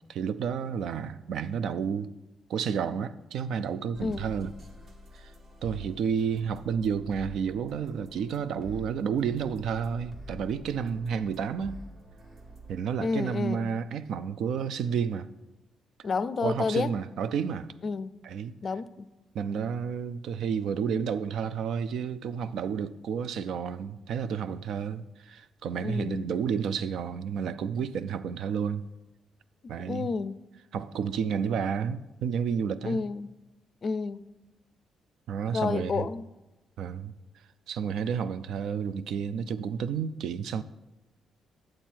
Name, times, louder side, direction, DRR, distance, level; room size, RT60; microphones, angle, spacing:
voice 1, 0.1-2.1 2.5-4.5 5.1-5.3 5.6-11.8 12.7-15.3 16.4-17.7 18.2-18.5 19.3-28.9 29.7-30.1 30.7-33.0 35.3-36.1 36.8-37.1 37.7-40.6, right 7 dB, 75° right, 0.4 m, -31 dB
sound 1, 3.9-12.8, equal, 45° right, 1.5 m, -47 dB
voice 2, 4.0-4.3 13.0-13.7 16.0-16.9 17.8-18.2 18.6-19.1 25.8-26.2 29.9-30.5 32.8-33.3 33.8-34.2 35.5-36.2, left 4 dB, 40° left, 0.4 m, -30 dB
9.1 x 7.6 x 4.5 m
cardioid pair, 90°, 0 cm